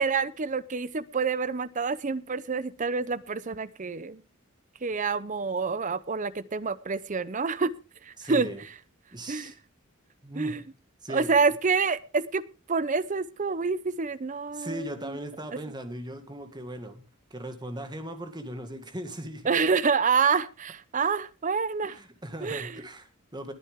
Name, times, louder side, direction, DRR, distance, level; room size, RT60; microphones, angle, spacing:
voice 1, 0.0-4.2 4.8-7.7 8.0-8.5 9.3-9.5 10.3-10.6 11.1-12.4 12.7-15.2 19.5-22.0 22.4-22.8, right 5 dB, 35° right, 18 dB, 0.6 m, -27 dB
voice 2, 8.2-8.6 9.1-9.6 10.2-10.6 11.0-11.3 14.5-17.0 17.3-19.5 21.8-23.5, right 1 dB, 20° right, 7 dB, 1.9 m, -38 dB
20.5 x 8.9 x 3.6 m, 0.33 s
head